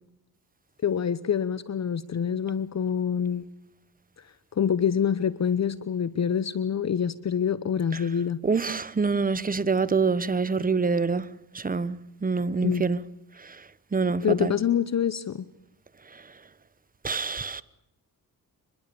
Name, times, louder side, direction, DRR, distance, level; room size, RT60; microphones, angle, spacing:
voice 1, 0.8-3.5 4.6-8.4 12.6-12.9 14.2-15.4, left 8 dB, 45° left, 0.9 m, -26 dB
voice 2, 8.4-11.2 11.5-12.0 12.2-13.0 13.9-14.5 17.0-17.6, right 4 dB, 25° right, 1.0 m, -25 dB
24.5 x 21.5 x 7.0 m
cardioid pair, 100°, 36 cm